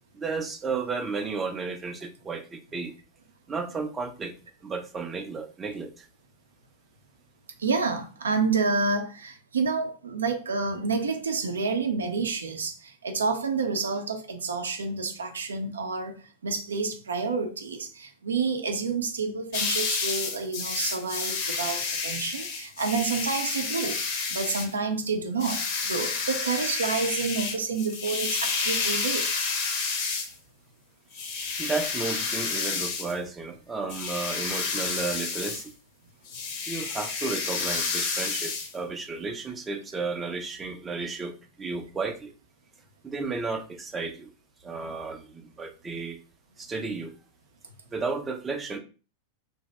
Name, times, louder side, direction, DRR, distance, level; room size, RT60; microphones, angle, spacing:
voice 1, 0.1-2.9 3.5-4.3 4.6-6.1 31.6-35.7 36.7-42.3 43.0-44.3 44.6-46.2 46.6-47.1 47.9-48.8, right 4 dB, 15° right, 0.5 m, -33 dB
voice 2, 7.6-16.2 16.4-29.2 44.8-44.9, right 4 dB, 70° right, 0.5 m, -29 dB
sound 1, 19.5-24.7 25.4-30.3 31.1-33.1 33.8-35.7 36.3-38.7, left 5 dB, 45° left, 0.6 m, -30 dB
2.7 x 2.0 x 3.2 m
figure-of-eight pair, 90°, 0 cm